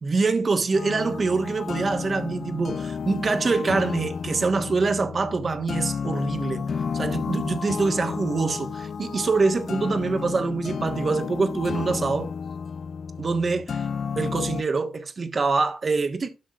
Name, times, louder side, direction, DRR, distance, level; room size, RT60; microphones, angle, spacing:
voice 1, 0.0-6.7 6.9-12.3 13.2-13.8 14.2-16.3, right 4 dB, 45° right, 1.4 m, -25 dB
sound 1, 0.7-14.6, left 6 dB, 55° left, 0.6 m, -32 dB
13.0 x 6.1 x 2.5 m
cardioid pair, 80°, 0 cm